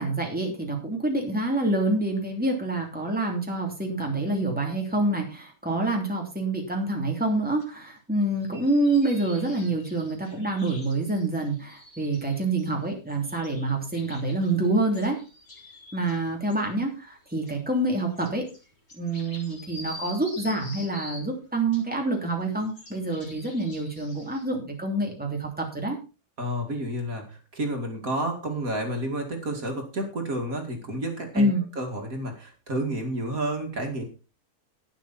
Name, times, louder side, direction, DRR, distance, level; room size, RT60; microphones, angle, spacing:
voice 1, 0.0-15.2 15.9-18.5 18.9-26.0 31.3-31.6, right 2 dB, 5° right, 1 dB, 3.1 m, -27 dB
sound 1, 7.6-7.7 8.2-16.2 16.5-16.6 17.1-21.3 21.7-24.4, left 1 dB, 50° left, 5.0 m, -46 dB
voice 2, 26.4-31.5 31.8-34.1, right 1 dB, 65° right, 3 dB, 2.8 m, -30 dB
12.0 x 10.0 x 4.2 m, 0.32 s
omnidirectional pair, 1.6 m